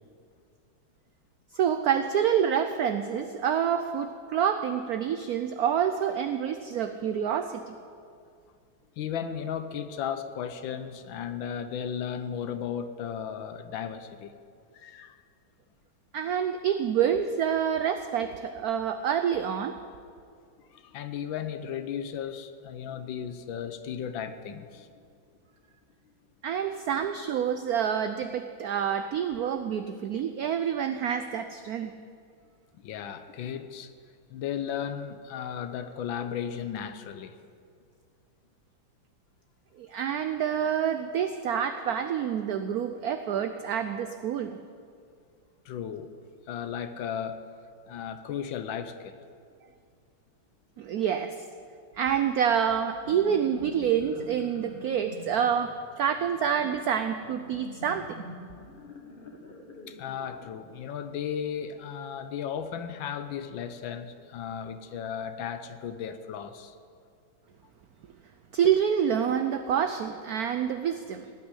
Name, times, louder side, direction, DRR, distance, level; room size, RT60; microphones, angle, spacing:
voice 1, 1.5-7.8 16.1-19.8 26.4-32.0 39.8-44.6 50.8-51.5 52.0-58.2 68.5-71.3, right 8 dB, 80° right, 8 dB, 0.8 m, -27 dB
voice 2, 9.0-14.4 14.7-15.2 20.6-24.9 26.8-26.9 32.7-33.9 34.3-37.4 45.6-46.1 46.5-47.4 47.9-49.2 59.9-66.7, left 8 dB, 75° left, 10 dB, 1.5 m, -35 dB
sound 1, 52.9-60.7, left 2 dB, 30° left, 1.4 m, -47 dB
17.0 x 6.1 x 9.8 m, 2.3 s
omnidirectional pair, 2.2 m